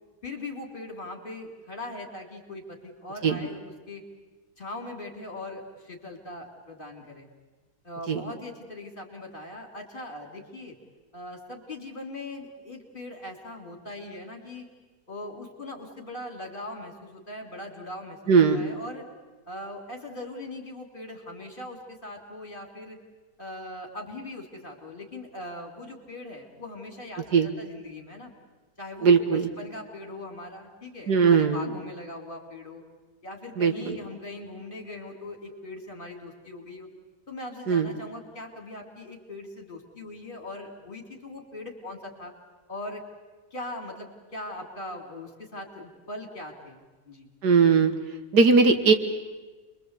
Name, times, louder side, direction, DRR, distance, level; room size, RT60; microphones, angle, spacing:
voice 1, 0.2-3.6 3.9-4.0 4.6-7.3 7.8-10.8 11.1-14.7 15.1-19.0 19.5-23.0 23.4-28.3 28.8-32.8 33.2-36.9 37.3-42.3 42.7-43.0 43.5-47.3, left 2 dB, 30° left, 2 dB, 3.7 m, -40 dB
voice 2, 18.3-18.7 27.3-27.5 29.0-29.5 31.1-31.7 33.6-34.0 37.7-37.9 47.4-47.9 48.3-48.9, right 5 dB, 80° right, 7 dB, 2.2 m, -19 dB
29.0 x 23.0 x 8.3 m, 1.3 s
omnidirectional pair, 1.7 m